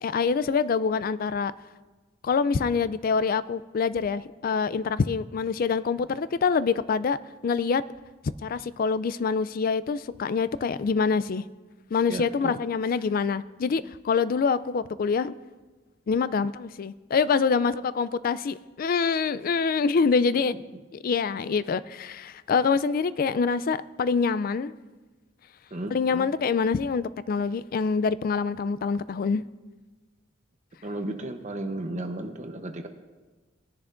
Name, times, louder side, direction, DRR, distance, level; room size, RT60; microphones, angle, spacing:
voice 1, 0.0-1.5 2.2-7.2 7.4-7.8 8.4-11.5 11.9-15.3 16.1-20.6 21.0-24.7 25.9-29.4, left 5 dB, 50° left, 16 dB, 0.3 m, -25 dB
voice 2, 12.1-12.6 20.7-20.8 25.7-26.3 30.8-32.9, right 1 dB, 40° right, 6 dB, 0.9 m, -34 dB
19.5 x 10.5 x 2.5 m, 1.3 s
head